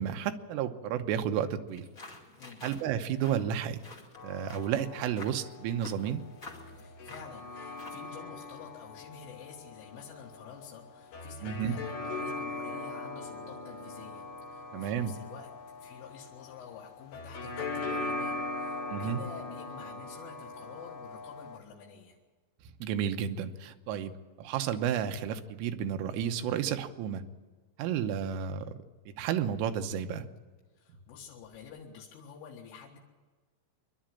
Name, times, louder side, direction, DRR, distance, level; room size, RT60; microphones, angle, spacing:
voice 1, 0.0-1.9 2.6-3.8 4.2-6.2 11.4-11.8 14.7-15.2 18.9-19.2 22.8-27.2 27.8-28.8 29.1-30.3, right 9 dB, 90° right, 7 dB, 3.6 m, -32 dB
sound 1, 1.7-8.2, left 2 dB, 30° left, 1.6 m, -50 dB
sound 2, 4.2-21.6, left 2 dB, 65° left, 4.0 m, -41 dB
voice 2, 6.6-15.5 15.8-22.2 30.8-33.0, left 7 dB, 85° left, -3 dB, 4.2 m, -49 dB
26.5 x 11.5 x 8.8 m, 1.4 s
omnidirectional pair, 5.6 m